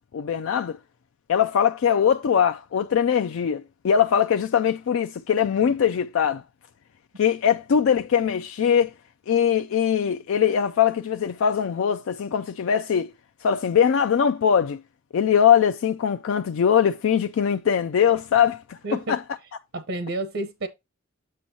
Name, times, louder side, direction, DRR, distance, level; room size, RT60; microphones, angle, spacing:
voice 1, 0.1-0.8 1.3-6.4 7.2-8.9 9.3-13.1 13.4-14.8 15.1-18.8 19.1-19.2, left 8 dB, 75° left, 0.4 m, -21 dB
voice 2, 18.8-19.2 19.7-20.7, right 2 dB, 80° right, 0.9 m, -30 dB
7.6 x 6.1 x 2.7 m
head